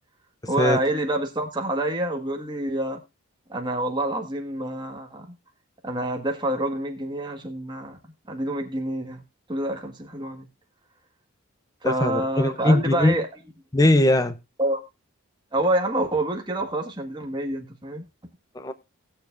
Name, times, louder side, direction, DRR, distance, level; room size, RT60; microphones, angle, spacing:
voice 1, 0.5-3.0 3.5-5.3 5.8-8.0 8.3-9.2 9.5-10.5 11.8-13.3 14.6-14.8 15.5-18.0, right 1 dB, 20° right, 1.6 m, -27 dB
voice 2, 11.8-13.2 13.7-14.4 18.5-18.7, left 1 dB, 15° left, 0.6 m, -20 dB
19.0 x 7.0 x 2.5 m
head